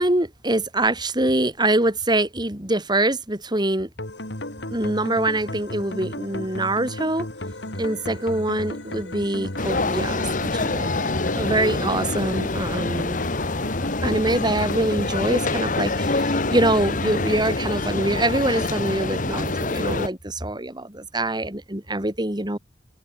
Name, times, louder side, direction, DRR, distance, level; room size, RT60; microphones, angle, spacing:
voice 1, 0.0-3.9 4.7-7.3 7.8-13.2 14.0-22.6, right 1 dB, 25° right, 4.2 m, -24 dB
tance bit, 4.0-19.0, left 1 dB, 80° left, 6.1 m, -34 dB
sound 1, 9.6-20.1, left 2 dB, 45° left, 1.7 m, -26 dB
open air
head